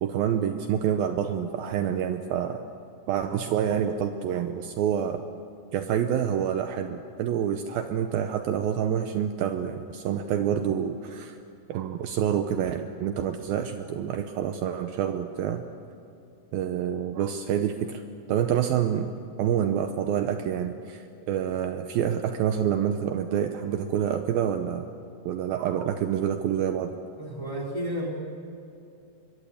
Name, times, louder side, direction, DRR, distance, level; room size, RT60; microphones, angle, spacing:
voice 1, 0.0-2.6 3.1-5.2 5.7-11.4 11.7-15.6 16.5-18.0 18.3-19.1 19.4-24.9 25.3-26.9, right 9 dB, 75° right, 7 dB, 2.4 m, -27 dB
voice 2, 27.2-28.1, equal, 5° left, -1 dB, 2.9 m, -32 dB
24.5 x 23.0 x 8.5 m, 2.6 s
omnidirectional pair, 4.8 m